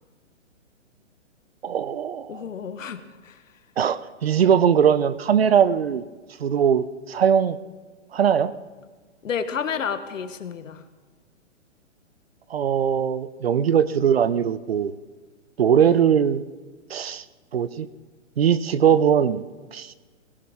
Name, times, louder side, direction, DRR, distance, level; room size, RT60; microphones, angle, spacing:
voice 1, 1.6-2.5 3.8-6.0 6.4-7.6 8.1-8.5 12.5-14.9 15.6-16.4 16.9-17.2 17.5-17.9 18.4-19.4 19.7-19.9, right 8 dB, 50° right, 17 dB, 0.6 m, -20 dB
voice 2, 2.3-3.4 9.2-10.8 15.8-16.0, left 7 dB, 85° left, 10 dB, 1.3 m, -31 dB
17.0 x 16.5 x 3.6 m, 1.4 s
hypercardioid pair, 175°, 38 cm